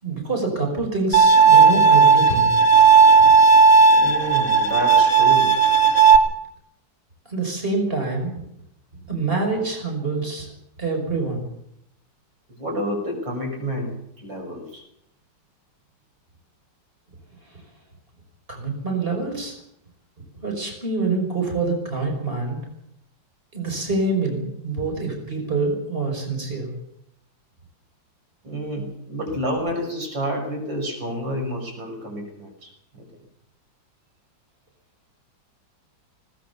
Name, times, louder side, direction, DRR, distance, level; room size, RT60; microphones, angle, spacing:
voice 1, 0.0-2.6 3.2-3.3 7.3-8.3 9.1-10.5 10.8-11.4 17.5-17.6 18.5-19.6 20.4-22.6 23.5-26.7, right 3 dB, 30° right, 2 dB, 5.8 m, -26 dB
Bowed string instrument, 1.1-6.2, right 5 dB, 50° left, 2.6 m, -14 dB
voice 2, 4.0-5.5 12.5-14.8 28.4-33.0, equal, 80° right, 2 dB, 6.9 m, -29 dB
20.5 x 19.5 x 7.1 m, 0.76 s
omnidirectional pair, 2.0 m